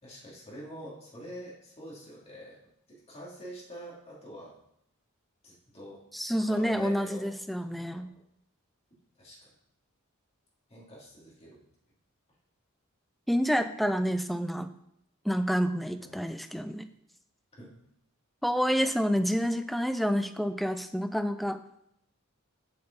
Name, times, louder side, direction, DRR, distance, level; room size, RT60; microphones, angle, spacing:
voice 1, 0.0-2.6 2.9-4.5 5.4-6.0 6.4-7.3 7.8-8.1 9.2-9.5 10.7-11.6 16.0-16.2 17.6-17.7, equal, 30° left, -6 dB, 2.8 m, -45 dB
voice 2, 6.1-8.1 13.3-14.7 15.2-16.9 18.4-21.6, equal, ahead, 9 dB, 0.3 m, -28 dB
7.1 x 6.8 x 4.0 m, 0.76 s
head